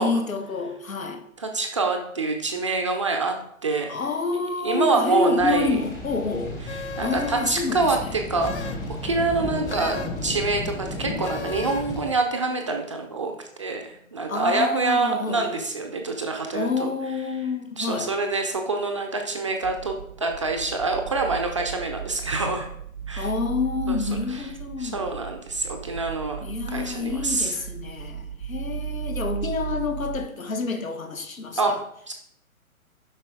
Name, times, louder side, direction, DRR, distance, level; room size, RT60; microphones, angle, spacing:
voice 1, 0.0-1.2 3.9-6.6 7.0-7.9 14.3-15.6 16.5-18.1 23.2-25.1 26.4-31.8, left 4 dB, 70° left, 1.5 m, -28 dB
voice 2, 1.4-3.4 3.6-4.0 4.6-5.8 6.7-13.3 13.6-16.9 17.8-22.7 23.1-23.3 23.9-24.5 24.8-27.6 31.6-31.8 32.1-32.2, right 3 dB, 25° right, 0.5 m, -26 dB
sound 1, 5.4-12.1, left 1 dB, 10° left, 1.0 m, -34 dB
sound 2, 6.7-7.7 8.4-8.9 9.7-10.2 11.2-12.0, left 5 dB, 55° left, 0.9 m, -36 dB
sound 3, 19.6-30.3, right 8 dB, 70° right, 0.7 m, -35 dB
7.5 x 5.4 x 4.7 m
figure-of-eight pair, 130°, 42 cm